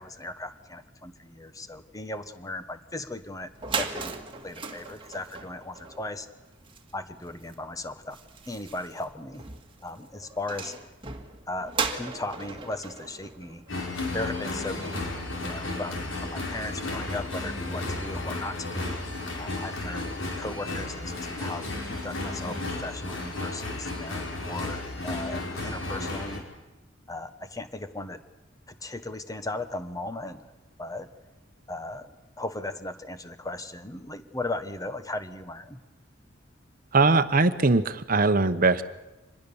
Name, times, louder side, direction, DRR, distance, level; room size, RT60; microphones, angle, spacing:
voice 1, 0.0-3.5 3.8-4.1 4.4-6.3 6.9-8.2 8.5-9.5 9.8-10.7 11.5-13.6 14.1-15.1 15.4-19.0 19.4-26.5 27.1-28.2 28.7-30.5 30.8-31.1 31.7-35.8, left 2 dB, 20° left, 10 dB, 1.2 m, -37 dB
sound 1, 3.2-3.3 3.5-14.3, right 5 dB, 25° right, 1.8 m, -37 dB
sound 2, 13.7-26.4, left 2 dB, 90° left, 4.8 m, -33 dB
voice 2, 36.9-38.8, right 3 dB, 45° right, 12 dB, 1.0 m, -21 dB
25.5 x 20.5 x 7.1 m, 1.1 s
head